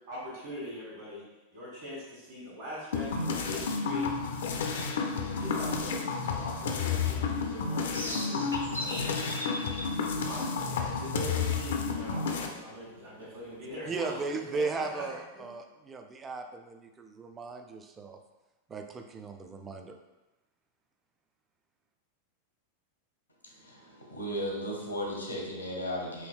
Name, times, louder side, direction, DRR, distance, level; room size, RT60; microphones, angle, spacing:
voice 1, 0.1-1.2 1.5-4.1 5.4-9.4 10.2-14.3 14.5-15.0 15.3-15.5, equal, 55° right, -8 dB, 1.4 m, -42 dB
sound 1, 2.9-12.5, left 5 dB, 60° left, 0.4 m, -31 dB
sound 2, 7.9-13.7, equal, 85° right, 0.5 m, -41 dB
voice 2, 13.9-18.2 18.7-19.9, right 4 dB, 20° right, 5 dB, 0.4 m, -36 dB
voice 3, 23.5-26.3, equal, 85° left, -2 dB, 0.7 m, -35 dB
4.6 x 2.6 x 2.3 m, 1.1 s
figure-of-eight pair, 90°, 0 cm